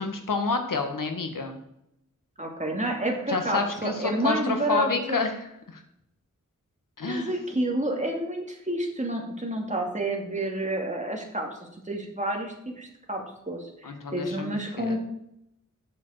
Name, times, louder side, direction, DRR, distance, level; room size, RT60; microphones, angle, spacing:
voice 1, 0.0-1.6 3.3-5.8 7.0-7.4 13.8-15.0, left 4 dB, 85° left, 5 dB, 1.7 m, -29 dB
voice 2, 2.4-5.2 7.0-11.6 11.8-15.0, right 1 dB, 25° right, 0 dB, 2.5 m, -29 dB
8.4 x 7.4 x 6.5 m, 0.80 s
wide cardioid pair, 90°, 31 cm